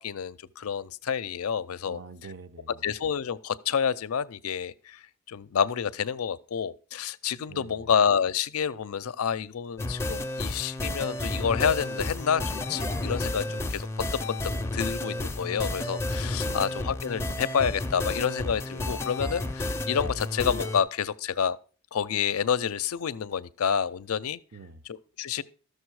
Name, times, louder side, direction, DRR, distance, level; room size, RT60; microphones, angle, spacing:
voice 1, 0.0-2.0 2.8-21.6 21.9-24.4 24.9-25.4, left 7 dB, 75° left, 0.5 m, -29 dB
voice 2, 1.9-2.9 7.5-7.9 16.4-16.8 24.5-24.8, right 4 dB, 55° right, 0.7 m, -46 dB
sound 1, 9.8-20.8, left 2 dB, 10° left, 0.5 m, -31 dB
13.5 x 6.6 x 4.7 m
head